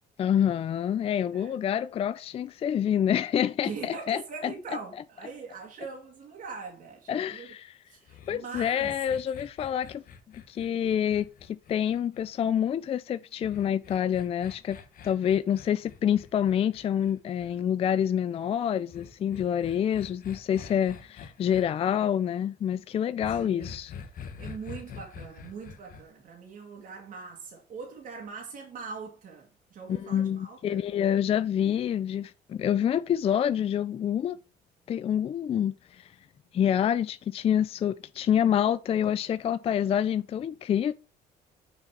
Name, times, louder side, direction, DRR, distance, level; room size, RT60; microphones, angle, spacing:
voice 1, 0.2-4.5 7.1-7.8 8.3-10.0 10.3-14.8 15.0-23.9 29.9-34.4 34.9-36.1 36.5-40.9, left 9 dB, 35° left, 0.4 m, -27 dB
voice 2, 3.6-7.5 7.9-8.9 23.3-23.8 24.4-30.9, right 5 dB, 55° right, 1.9 m, -42 dB
sound 1, 8.1-12.5 13.4-17.6 18.9-21.6 23.2-26.0, left 6 dB, 55° left, 1.3 m, -45 dB
6.8 x 4.1 x 5.8 m
cardioid pair, 110°, 17 cm